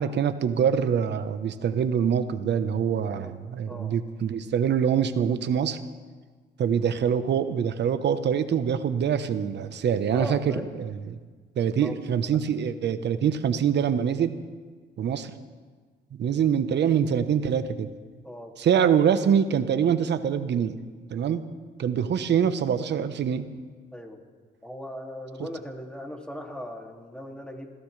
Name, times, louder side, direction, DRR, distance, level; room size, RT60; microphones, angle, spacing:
voice 1, 0.0-5.8 6.6-11.2 11.6-14.4 15.0-15.3 16.2-17.9 18.6-20.8 21.1-21.4 21.8-23.5, right 8 dB, 60° right, 10 dB, 1.1 m, -24 dB
voice 2, 3.0-3.4 3.7-4.0 10.1-10.7 11.8-12.0 18.2-18.5 21.2-21.4 23.9-24.2 24.6-27.7, left 1 dB, 5° left, 1 dB, 2.5 m, -38 dB
26.5 x 16.0 x 3.3 m, 1.5 s
cardioid pair, 90°, 20 cm